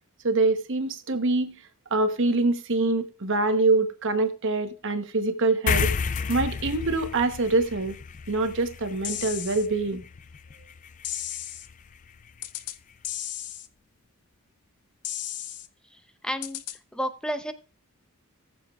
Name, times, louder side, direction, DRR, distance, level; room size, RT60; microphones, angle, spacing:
voice 1, 0.2-1.6 1.9-5.9 6.3-8.0 8.3-10.0, right 3 dB, 60° right, 1.0 m, -25 dB
sound 1, 5.7-12.5, left 5 dB, 35° left, 0.4 m, -33 dB
sound 2, 9.0-9.7 11.0-11.7 12.4-12.8 13.0-13.7 15.0-15.7 16.4-16.8, left 12 dB, 90° left, 0.6 m, -34 dB
voice 2, 15.9-16.6 16.9-17.5, equal, 5° left, 0.7 m, -31 dB
18.0 x 7.2 x 2.4 m
head